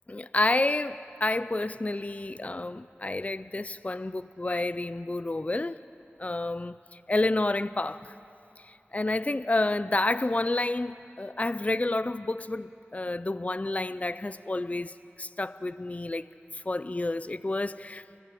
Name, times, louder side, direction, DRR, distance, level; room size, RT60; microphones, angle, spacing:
voice 1, 0.1-5.8 6.2-6.8 7.1-8.1 8.7-14.9 15.2-16.2 16.5-18.0, left 2 dB, 35° left, 0.5 m, -29 dB
28.5 x 14.5 x 8.5 m
wide cardioid pair, 55°, 4 cm